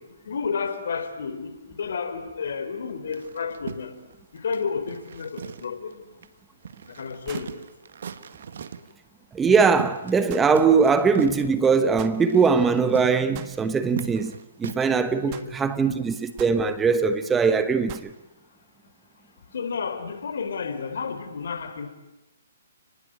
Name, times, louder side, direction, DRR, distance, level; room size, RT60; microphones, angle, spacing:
voice 1, 0.3-3.9 4.3-6.0 6.9-7.6 15.1-15.5 19.5-21.9, left 5 dB, 70° left, 4.1 m, -31 dB
sound 1, 3.1-5.9 6.2-6.3 6.6-8.9 9.4-10.3 10.5-15.0, right 7 dB, 65° right, 1.8 m, -38 dB
sound 2, 6.0-6.1 7.3-7.6 10.3-10.5 12.0-12.2 13.3-13.6 15.3-15.5 16.4-16.6 17.9-18.1, right 15 dB, 30° right, 1.5 m, -42 dB
voice 2, 9.3-14.3 14.6-18.1, right 5 dB, 10° right, 1.1 m, -21 dB
30.0 x 20.0 x 9.1 m
hypercardioid pair, 145°, 0 cm